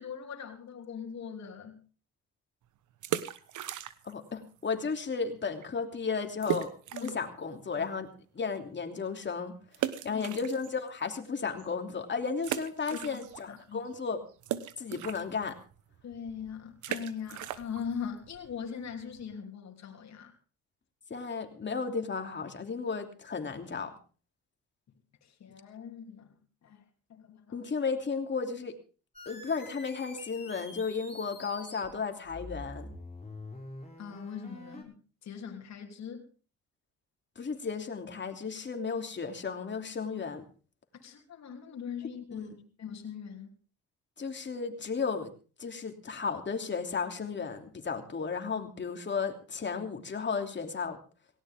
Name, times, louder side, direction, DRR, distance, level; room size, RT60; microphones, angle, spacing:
voice 1, 0.0-1.8 6.9-7.2 7.5-7.9 10.0-10.2 12.9-13.8 16.0-20.3 25.2-26.4 26.6-26.8 27.1-27.7 34.0-36.3 40.9-42.5 42.8-43.6, left 7 dB, 60° left, 2 dB, 3.1 m, -41 dB
sound 1, 2.9-4.3 4.5-4.6 5.2-5.3 5.6-5.7 6.4-7.3 7.8-7.9 9.7-11.1 11.6-11.7 12.4-13.6 13.9-19.4, right 11 dB, 80° right, 1.2 m, -37 dB
voice 2, 4.0-6.7 7.0-8.1 8.3-9.5 10.0-14.2 14.8-15.6 21.1-24.0 27.5-28.7 29.3-32.9 37.4-40.4 42.3-42.6 44.2-45.3 45.6-51.0, left 5 dB, 35° left, 5 dB, 3.0 m, -34 dB
sound 2, 29.1-31.9 32.3-34.8, left 2 dB, 20° left, 5.9 m, -46 dB
18.0 x 17.5 x 3.6 m, 0.37 s
cardioid pair, 90°, 30 cm